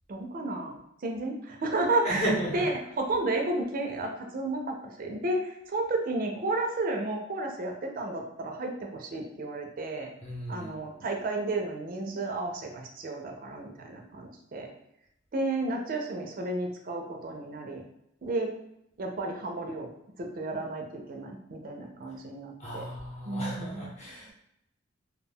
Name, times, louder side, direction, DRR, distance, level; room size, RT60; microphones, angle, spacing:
voice 1, 0.1-10.1 10.5-14.7 15.3-17.8 18.2-18.5 19.0-19.9 20.2-22.9 23.3-23.9, right 2 dB, 45° right, 2 dB, 0.4 m, -32 dB
voice 2, 2.0-2.6 10.2-10.7 22.6-24.3, equal, 35° left, -4 dB, 0.8 m, -34 dB
2.2 x 2.2 x 3.5 m, 0.81 s
head